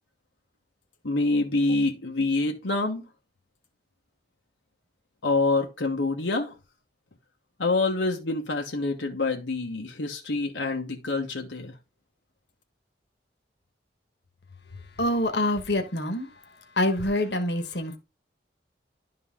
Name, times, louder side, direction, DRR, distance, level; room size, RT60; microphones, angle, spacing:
voice 1, 1.0-3.0 5.2-6.5 7.6-11.7, left 3 dB, 90° left, 1.1 m, -26 dB
voice 2, 15.0-16.3 16.8-18.0, left 1 dB, 65° left, 1.3 m, -25 dB
11.5 x 3.9 x 3.7 m
head